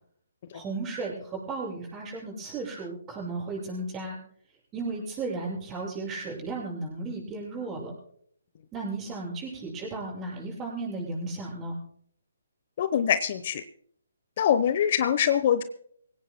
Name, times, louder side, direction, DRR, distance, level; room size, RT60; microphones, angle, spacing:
voice 1, 0.5-4.2 4.7-7.9 8.7-11.8, right 3 dB, 20° right, -3 dB, 6.7 m, -34 dB
voice 2, 12.8-13.6 14.4-15.6, left 9 dB, 45° left, 12 dB, 0.9 m, -24 dB
25.0 x 17.0 x 2.2 m, 0.63 s
figure-of-eight pair, 140°, 0 cm